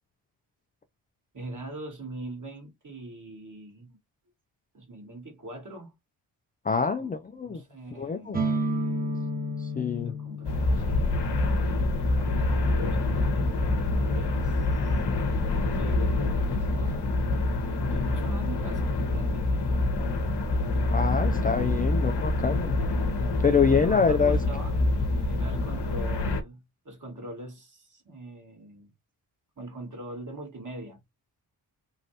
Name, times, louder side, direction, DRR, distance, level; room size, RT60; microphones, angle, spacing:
voice 1, 1.3-4.0 4.7-5.9 6.7-7.2 7.4-8.5 9.1-9.2 9.9-12.0 12.2-15.0 15.8-17.3 17.8-19.7 21.5-21.9 23.5-24.8 25.2-28.9 29.6-31.0, right 1 dB, 40° right, 1.7 m, -42 dB
voice 2, 6.6-7.6 8.0-8.5 9.6-10.1 20.9-22.8 23.4-24.4, left 5 dB, 20° left, 0.3 m, -25 dB
sound 1, 8.3-16.0, equal, 20° right, 0.9 m, -35 dB
sound 2, 10.4-26.4, left 2 dB, 55° left, 1.0 m, -26 dB
3.2 x 2.6 x 2.7 m
supercardioid pair, 40°, 49 cm